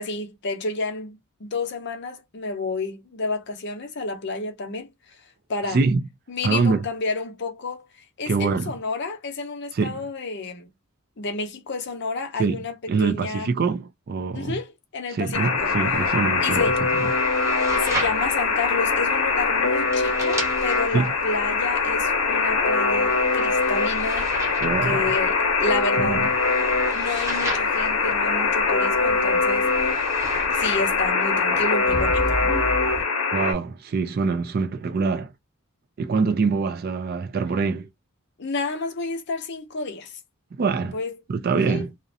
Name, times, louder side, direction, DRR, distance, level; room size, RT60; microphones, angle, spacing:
voice 1, 0.0-4.9 5.5-5.8 6.3-7.8 8.2-10.7 11.2-13.5 14.3-15.7 16.4-16.8 17.8-24.5 24.8-26.3 26.9-30.1 30.5-32.2 38.4-40.1 40.8-41.1 41.6-41.8, left 3 dB, 50° left, 0.6 m, -30 dB
voice 2, 5.6-6.0 6.4-6.9 8.3-8.7 9.7-10.1 12.4-14.6 15.1-16.7 17.0-17.1 20.9-21.1 24.6-25.2 26.0-26.3 33.3-35.3 36.0-37.9 40.5-41.0 41.3-41.9, right 4 dB, 45° right, 0.3 m, -24 dB
Alarm, 15.3-33.5, left 4 dB, 90° left, 0.7 m, -23 dB
sound 1, 15.6-33.0, right 1 dB, 15° right, 1.0 m, -35 dB
2.4 x 2.0 x 2.7 m
head